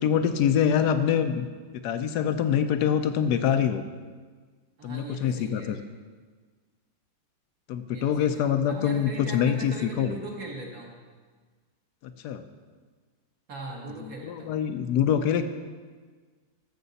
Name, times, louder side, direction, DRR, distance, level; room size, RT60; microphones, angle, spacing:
voice 1, 0.0-1.5 1.8-3.8 4.8-5.8 7.7-10.2 12.2-12.4 14.0-15.4, left 8 dB, 75° left, 9 dB, 1.1 m, -25 dB
voice 2, 4.8-5.8 7.9-11.0 13.5-14.5, right 2 dB, 55° right, -1 dB, 1.9 m, -40 dB
13.5 x 6.9 x 4.1 m, 1.5 s
omnidirectional pair, 1.8 m